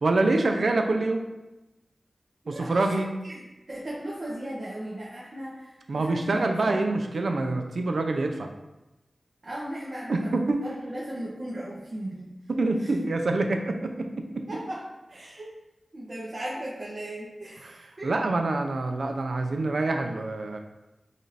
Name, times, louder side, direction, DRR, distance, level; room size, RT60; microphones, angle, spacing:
voice 1, 0.0-1.3 2.5-3.1 5.9-8.5 10.1-10.6 12.5-14.5 18.0-20.6, right 2 dB, 80° right, 4 dB, 0.5 m, -26 dB
voice 2, 2.4-6.8 9.4-12.3 12.8-12.9 14.5-15.5 15.9-18.1, right 1 dB, 55° right, -7 dB, 1.0 m, -37 dB
4.9 x 2.6 x 4.1 m, 0.99 s
wide cardioid pair, 90°, 0 cm